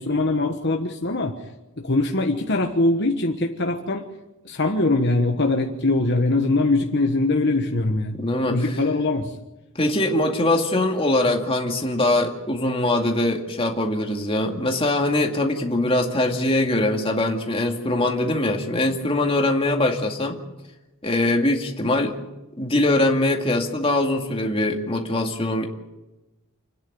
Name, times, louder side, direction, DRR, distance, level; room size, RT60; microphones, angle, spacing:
voice 1, 0.0-1.3 1.8-4.0 4.4-8.2 8.5-9.3, left 2 dB, 50° left, 2 dB, 1.3 m, -22 dB
voice 2, 8.2-8.8 9.8-20.4 21.0-22.1 22.6-25.7, left 1 dB, 25° left, 2 dB, 2.2 m, -22 dB
29.0 x 10.0 x 9.4 m, 1.0 s
head